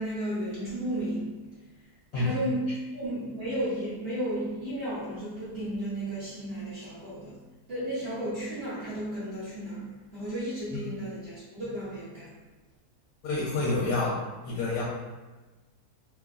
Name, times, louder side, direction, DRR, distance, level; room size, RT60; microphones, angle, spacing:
voice 1, 0.0-1.7 2.1-12.3, right 1 dB, 55° right, -10 dB, 0.7 m, -34 dB
voice 2, 13.2-14.2 14.4-14.8, left 3 dB, 80° left, -4 dB, 1.2 m, -28 dB
3.0 x 2.3 x 2.3 m, 1.2 s
omnidirectional pair, 1.7 m